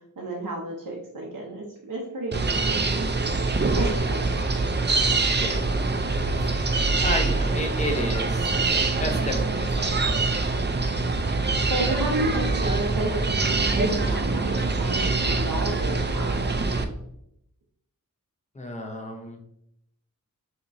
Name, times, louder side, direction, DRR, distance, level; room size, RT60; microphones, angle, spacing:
voice 1, 0.2-2.8 3.7-4.4 11.7-16.5, right 2 dB, 90° right, -2 dB, 0.8 m, -31 dB
sound 1, 2.3-16.8, right 3 dB, 30° right, 0.5 m, -24 dB
voice 2, 3.7-4.1 5.4-5.6 6.4-6.5 7.0-8.5 9.0-10.2 18.6-19.4, left 1 dB, 20° left, 2 dB, 0.8 m, -32 dB
5.8 x 2.9 x 2.6 m, 0.75 s
wide cardioid pair, 65°, 33 cm